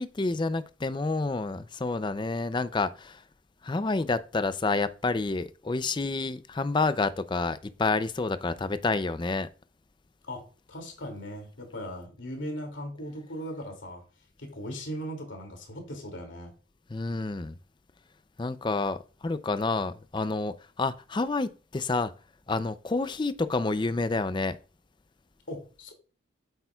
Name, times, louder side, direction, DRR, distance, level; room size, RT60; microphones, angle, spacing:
voice 1, 0.0-3.2 3.6-9.5 16.9-17.5 18.4-22.1 22.5-24.6, left 3 dB, 25° left, 0.4 m, -29 dB
voice 2, 10.3-14.0 14.4-16.5 25.5-25.9, equal, 70° left, 2.5 m, -38 dB
8.7 x 8.0 x 2.3 m
head